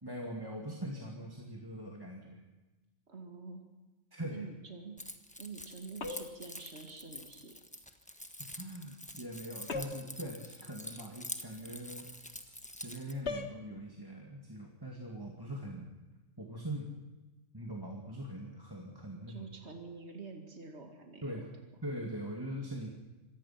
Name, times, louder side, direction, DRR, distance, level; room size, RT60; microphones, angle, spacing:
voice 1, 0.0-2.4 4.1-4.4 8.6-12.1 12.7-15.9 16.4-17.0 17.5-19.5 21.2-21.5 21.8-22.9, right 1 dB, 15° right, -1 dB, 2.4 m, -42 dB
voice 2, 3.1-3.7 4.3-5.0 5.4-7.5 19.3-21.2, right 4 dB, 60° right, 3 dB, 2.6 m, -47 dB
Keys jangling, 5.0-13.1, left 1 dB, 5° left, 1.3 m, -47 dB
sound 1, 6.0-6.5 9.7-10.2 13.2-13.6, left 4 dB, 60° left, 1.7 m, -38 dB
25.5 x 18.0 x 5.9 m, 1.1 s
omnidirectional pair, 1.3 m